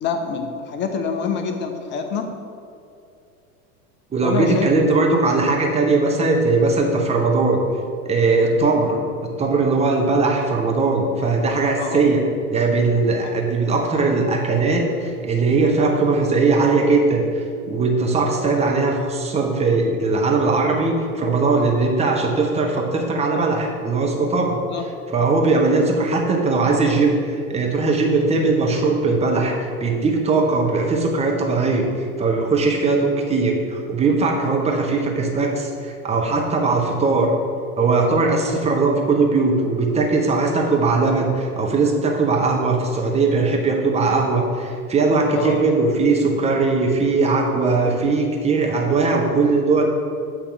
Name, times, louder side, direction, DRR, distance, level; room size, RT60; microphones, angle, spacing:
voice 1, 0.0-2.4 4.2-4.7 11.8-12.1 13.2-13.4 24.7-24.8 45.3-45.6, left 5 dB, 25° left, 5 dB, 0.6 m, -26 dB
voice 2, 4.1-7.6 8.0-9.0 9.4-12.2 12.5-24.5 25.1-37.3 37.8-49.8, right 3 dB, 15° right, 0 dB, 0.8 m, -19 dB
8.2 x 2.9 x 5.2 m, 2.4 s
figure-of-eight pair, 85°, 45 cm